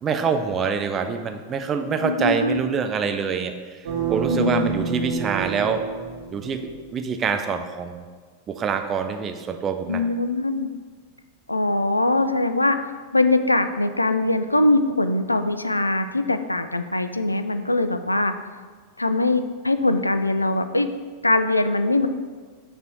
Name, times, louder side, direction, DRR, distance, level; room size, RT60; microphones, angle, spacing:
voice 1, 0.0-3.8 4.1-5.8 6.3-6.6 6.9-8.0 8.5-10.0, right 6 dB, 25° right, 6 dB, 0.5 m, -25 dB
voice 2, 2.0-2.6 4.3-4.7 9.9-10.7 11.5-12.8 13.1-18.4 19.0-20.9 21.2-22.1, left 2 dB, 85° left, 10 dB, 0.3 m, -22 dB
sound 1, 3.8-6.8, right 6 dB, 55° right, 1.3 m, -28 dB
6.6 x 3.4 x 6.0 m, 1.5 s
figure-of-eight pair, 90°, 0 cm